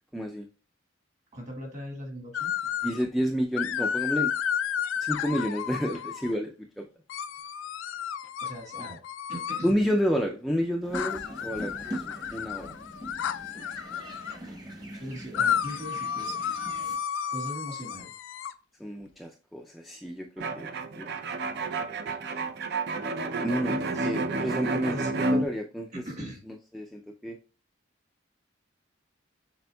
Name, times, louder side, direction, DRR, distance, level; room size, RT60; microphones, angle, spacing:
voice 1, 0.1-0.5 2.8-4.3 5.0-6.9 8.8-8.9 9.6-12.7 18.8-21.1 23.4-27.4, equal, ahead, 1 dB, 0.3 m, -30 dB
voice 2, 1.3-2.5 8.4-9.0 9.3-9.8 11.5-11.7 15.0-16.6 17.3-18.1 22.0-22.2 23.6-24.3 24.7-25.3 25.9-26.4, equal, 40° right, 2 dB, 1.7 m, -40 dB
sound 1, 2.3-3.0 3.6-6.3 7.1-9.7 10.9-14.4 15.3-18.5, left 8 dB, 80° left, 0.3 m, -32 dB
sound 2, 10.8-17.0, right 1 dB, 20° right, 1.0 m, -42 dB
sound 3, 20.4-25.4, right 2 dB, 55° right, 0.5 m, -30 dB
6.8 x 3.5 x 2.2 m, 0.35 s
head